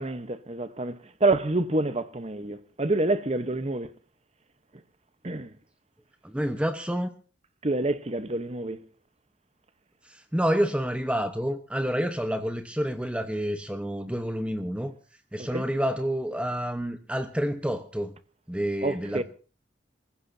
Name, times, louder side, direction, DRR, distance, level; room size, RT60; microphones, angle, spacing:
voice 1, 0.0-3.9 5.2-5.6 7.6-8.8 15.4-15.7 18.8-19.2, right 2 dB, 35° right, 1.0 m, -27 dB
voice 2, 6.2-7.1 10.1-14.9 15.3-18.1 18.5-19.2, equal, 5° right, 1.0 m, -28 dB
26.0 x 15.5 x 2.7 m
head